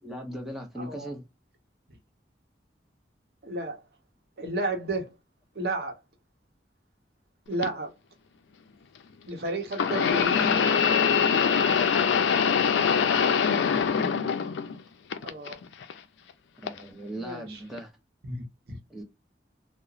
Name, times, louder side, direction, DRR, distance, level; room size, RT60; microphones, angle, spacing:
voice 1, 0.0-1.2 12.2-13.1 16.6-17.9 18.9-19.0, right 1 dB, ahead, 0.6 m, -39 dB
voice 2, 0.8-1.1 3.4-3.8 4.4-5.1 5.5-6.0 7.5-7.9 9.3-10.6 15.2-15.6 17.2-17.6 18.2-18.8, right 2 dB, 65° right, 0.7 m, -32 dB
sound 1, 7.6-7.7 9.7-14.8 15.1-15.9 16.7-16.8 17.8-17.9, left 6 dB, 90° left, 0.4 m, -23 dB
2.8 x 2.0 x 2.3 m
head